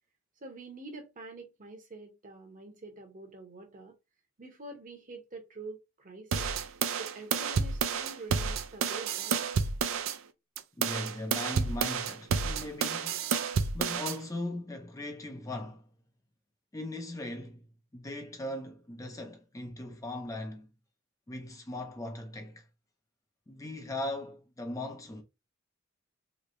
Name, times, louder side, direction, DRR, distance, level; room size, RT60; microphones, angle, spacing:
voice 1, 0.4-4.0 4.4-6.5 7.0-9.4, right 2 dB, 40° right, 0.9 m, -46 dB
sound 1, 6.3-10.2 10.6-14.2, right 6 dB, 75° right, 0.4 m, -30 dB
voice 2, 10.8-13.2 13.7-15.9 16.7-17.7 17.9-20.7 21.3-22.7 23.5-25.2, left 1 dB, 15° left, 0.5 m, -39 dB
3.2 x 2.8 x 2.6 m
head